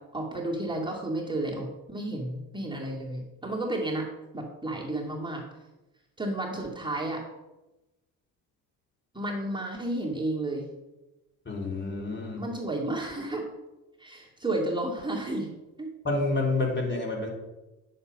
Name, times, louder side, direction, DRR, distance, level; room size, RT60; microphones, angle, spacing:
voice 1, 0.1-4.1 4.3-5.4 6.2-7.2 9.1-10.7 12.4-13.5 14.0-15.5 15.8-15.9, right 1 dB, 10° right, -2 dB, 2.3 m, -32 dB
voice 2, 11.5-12.4 16.0-17.3, left 2 dB, 25° left, -1 dB, 4.0 m, -28 dB
10.0 x 6.7 x 5.4 m, 1.1 s
supercardioid pair, 70°, 40 cm